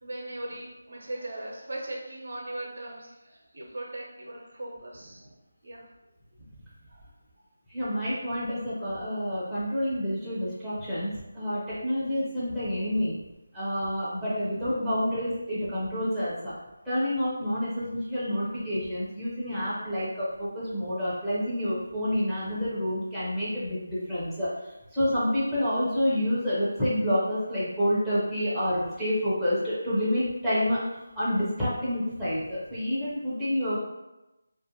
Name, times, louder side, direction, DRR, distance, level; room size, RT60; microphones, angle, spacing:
voice 1, 0.0-5.3 5.6-5.8 6.9-7.1, right 1 dB, 70° right, -2 dB, 0.7 m, -39 dB
voice 2, 7.7-13.2 13.5-16.5 16.8-24.5 24.9-30.8 31.2-33.8, equal, ahead, -14 dB, 0.6 m, -28 dB
2.5 x 2.0 x 2.9 m, 0.98 s
figure-of-eight pair, 170°, 0 cm